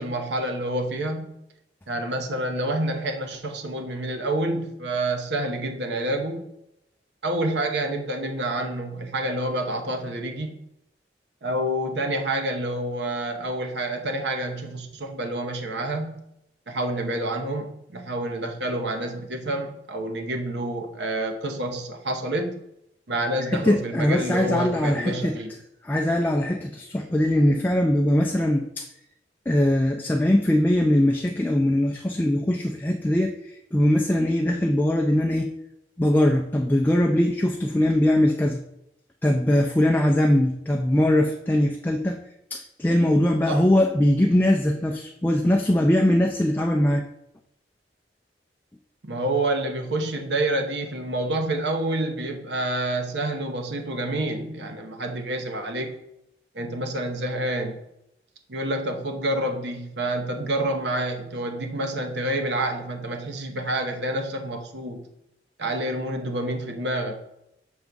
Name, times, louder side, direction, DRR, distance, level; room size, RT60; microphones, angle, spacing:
voice 1, 0.0-1.3 1.9-6.5 7.2-10.6 11.4-16.3 16.7-22.6 23.1-25.5 43.5-43.7 49.0-56.0 56.5-57.8 58.5-65.0 65.6-67.2, right 1 dB, 75° right, 5 dB, 0.9 m, -28 dB
voice 2, 23.5-25.3 25.8-28.8 29.5-33.3 33.7-35.5 36.0-38.6 39.2-42.2 42.5-47.0, left 1 dB, 10° left, 2 dB, 0.3 m, -21 dB
6.2 x 3.5 x 5.3 m, 0.81 s
head